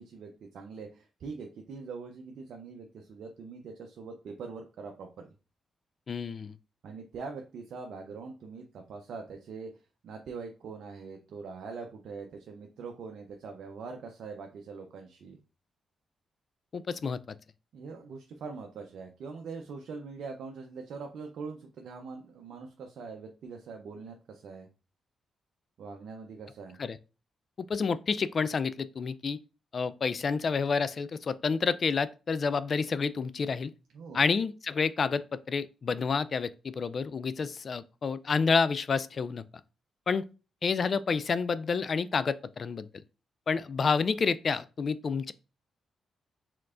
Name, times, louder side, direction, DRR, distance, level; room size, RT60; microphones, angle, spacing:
voice 1, 0.0-5.3 6.8-15.4 17.7-24.7 25.8-26.8 33.9-34.2, right 4 dB, 70° right, 0.6 m, -43 dB
voice 2, 6.1-6.6 16.7-17.2 26.8-27.0 27.6-29.4 29.7-33.7 34.1-39.4 40.1-40.3 40.6-42.9 43.5-45.3, left 5 dB, 55° left, 0.3 m, -29 dB
4.6 x 3.6 x 2.4 m
supercardioid pair, 50°, 0 cm